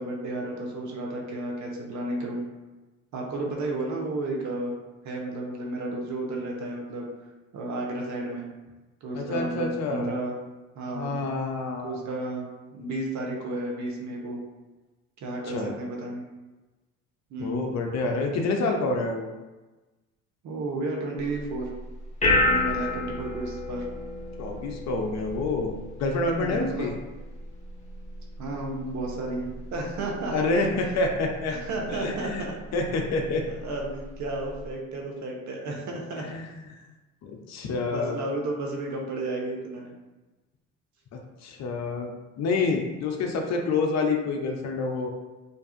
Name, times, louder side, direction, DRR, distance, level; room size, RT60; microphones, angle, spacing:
voice 1, 0.0-2.5 3.1-4.7 5.0-7.1 7.5-8.5 9.0-10.3 10.7-11.2 11.8-14.4 15.2-16.3 17.3-17.7 20.4-21.7 22.4-23.9 26.3-26.9 28.4-30.6 31.5-32.7 33.5-36.5 37.8-40.0, right 2 dB, 50° right, 0 dB, 0.8 m, -32 dB
voice 2, 9.1-10.1 10.9-12.0 15.4-15.7 17.4-19.3 24.4-25.7 26.0-26.9 30.3-31.5 31.9-32.5 32.7-33.4 36.2-36.4 37.2-38.2 41.1-42.1 42.4-45.1, left 3 dB, 45° left, 2 dB, 0.5 m, -27 dB
sound 1, 21.2-34.7, left 2 dB, 20° left, 0.8 m, -32 dB
2.6 x 2.3 x 2.4 m, 1.2 s
hypercardioid pair, 70°, 37 cm